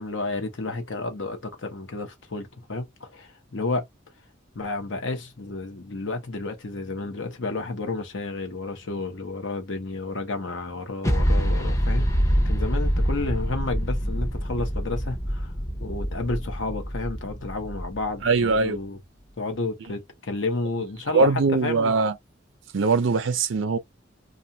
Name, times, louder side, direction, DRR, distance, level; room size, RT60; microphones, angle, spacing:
voice 1, 0.0-3.9 4.5-12.1 12.4-15.5 15.8-19.0 19.4-21.9, left 3 dB, 80° left, 0.9 m, -31 dB
sound 1, 11.0-18.6, equal, 15° left, 0.5 m, -25 dB
voice 2, 18.2-18.8 21.1-22.1 22.7-23.8, right 4 dB, 85° right, 0.5 m, -21 dB
2.5 x 2.4 x 2.7 m
head